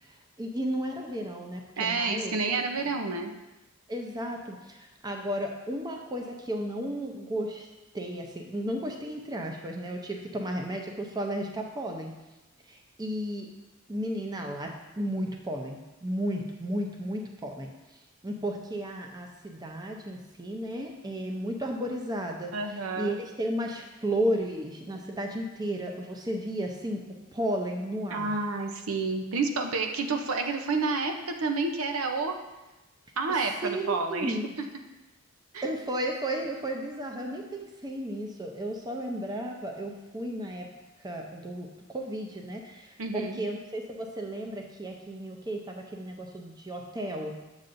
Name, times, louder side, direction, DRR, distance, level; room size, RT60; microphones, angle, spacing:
voice 1, 0.1-2.5 3.9-7.7 7.9-12.1 12.7-13.5 13.9-17.7 18.2-27.0 27.3-28.4 33.4-34.5 35.6-40.7 41.0-47.3, right 1 dB, 20° right, 2 dB, 0.6 m, -34 dB
voice 2, 1.8-3.3 22.5-23.2 28.1-32.4 33.2-34.4 35.5-35.7 43.0-43.4, right 3 dB, 80° right, 4 dB, 0.7 m, -29 dB
7.5 x 7.1 x 2.6 m, 1.1 s
head